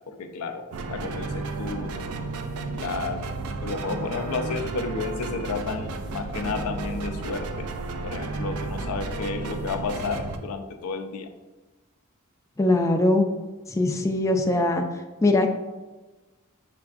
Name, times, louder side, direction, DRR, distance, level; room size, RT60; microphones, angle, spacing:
voice 1, 0.1-2.0 2.7-3.3 3.6-7.7 8.0-11.3, left 4 dB, 90° left, 7 dB, 0.5 m, -32 dB
sound 1, 0.7-10.4, right 3 dB, 90° right, 0.4 m, -33 dB
voice 2, 12.6-13.2 13.7-14.8 15.2-15.5, left 2 dB, 15° left, 3 dB, 0.3 m, -21 dB
5.8 x 3.4 x 2.4 m, 1.2 s
head